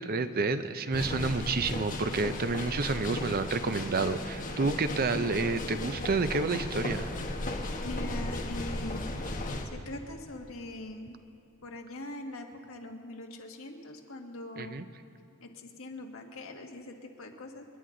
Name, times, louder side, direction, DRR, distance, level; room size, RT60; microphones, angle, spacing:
voice 1, 0.0-7.1 14.6-14.8, right 3 dB, 45° right, 11 dB, 0.6 m, -29 dB
sound 1, 0.9-9.7, left 1 dB, 40° left, 1.3 m, -35 dB
voice 2, 7.8-11.2 11.6-14.8 15.4-17.6, left 2 dB, 65° left, 2 dB, 1.6 m, -42 dB
28.5 x 11.0 x 3.9 m, 2.8 s
head